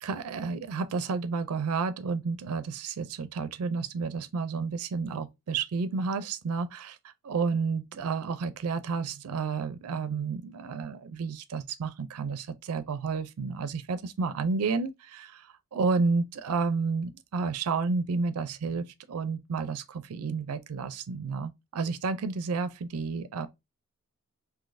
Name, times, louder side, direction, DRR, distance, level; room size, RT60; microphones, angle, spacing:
voice 1, 0.0-23.5, right 4 dB, 80° right, 0.4 m, -31 dB
3.9 x 2.7 x 2.5 m
head